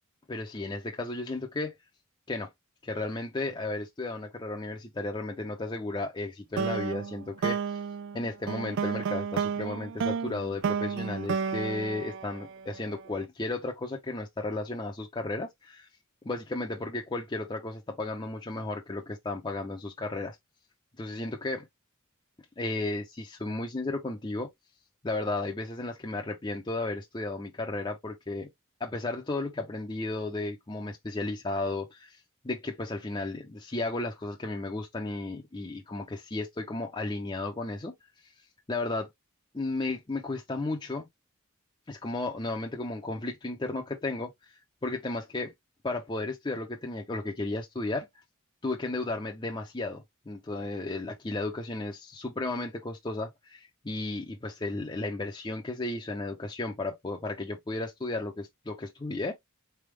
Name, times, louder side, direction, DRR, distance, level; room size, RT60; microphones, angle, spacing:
voice 1, 0.3-1.7 2.3-2.5 2.8-7.8 8.1-15.9 16.2-20.4 21.0-21.7 22.6-24.5 25.0-28.5 28.8-32.2 32.4-37.9 38.7-39.1 39.5-41.1 41.9-44.3 44.8-45.5 45.8-48.1 48.6-59.3, left 2 dB, 20° left, 0.6 m, -34 dB
sound 1, 6.6-13.0, right 6 dB, 60° right, 0.3 m, -32 dB
4.1 x 3.4 x 3.2 m
head